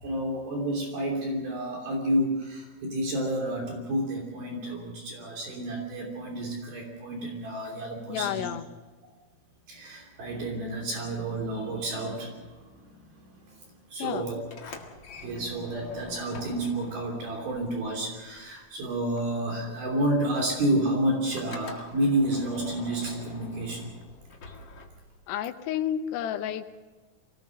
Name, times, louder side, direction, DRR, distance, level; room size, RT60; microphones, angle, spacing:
voice 1, 0.0-8.4 9.7-14.4 14.7-14.8 15.2-23.9, right 1 dB, 65° right, 1 dB, 4.9 m, -30 dB
voice 2, 8.1-8.7 14.0-14.3 25.3-26.8, left 10 dB, 85° left, 8 dB, 3.1 m, -31 dB
Sliding door, 14.4-18.7 18.9-25.3, left 4 dB, 45° left, 1.5 m, -45 dB
25.5 x 18.5 x 6.5 m, 1.3 s
omnidirectional pair, 4.8 m